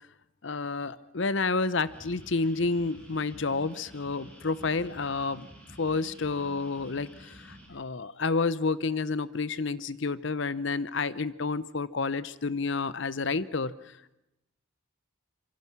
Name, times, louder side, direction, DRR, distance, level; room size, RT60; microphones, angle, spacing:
voice 1, 0.4-5.5 5.8-13.7, left 4 dB, 60° left, 18 dB, 0.8 m, -30 dB
sound 1, 1.8-7.7, equal, 5° left, 6.8 m, -50 dB
26.0 x 24.5 x 6.1 m, 0.89 s
head